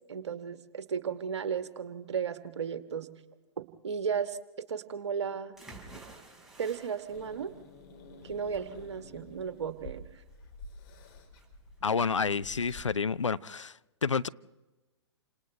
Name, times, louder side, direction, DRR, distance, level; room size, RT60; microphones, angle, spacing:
voice 1, 0.1-3.1 3.6-4.4 4.7-5.5 6.6-7.5 8.2-10.0, right 7 dB, 65° right, 1.6 m, -34 dB
sound 1, 5.6-13.2, right 2 dB, ahead, 5.5 m, -54 dB
Growling / Hiss, 7.1-12.8, left 2 dB, 45° left, 4.4 m, -50 dB
voice 2, 11.8-13.7 14.0-14.3, left 5 dB, 80° left, 0.6 m, -29 dB
29.0 x 27.0 x 3.4 m
figure-of-eight pair, 110°, 15 cm